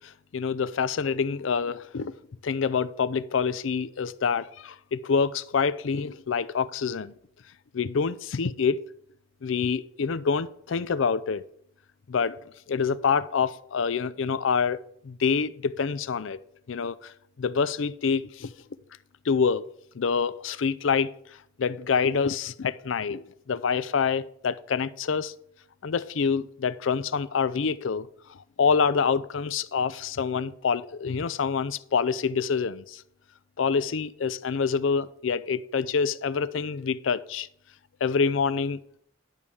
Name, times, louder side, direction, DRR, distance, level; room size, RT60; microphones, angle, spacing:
voice 1, 0.0-2.1 2.4-7.1 7.7-8.8 9.4-11.4 12.1-12.4 12.7-14.8 15.0-16.4 16.7-17.1 17.4-18.5 19.2-19.7 19.9-21.1 21.6-25.3 25.8-33.0 33.6-37.5 38.0-38.8, left 5 dB, 85° left, 0.5 m, -26 dB
11.0 x 4.9 x 7.0 m
head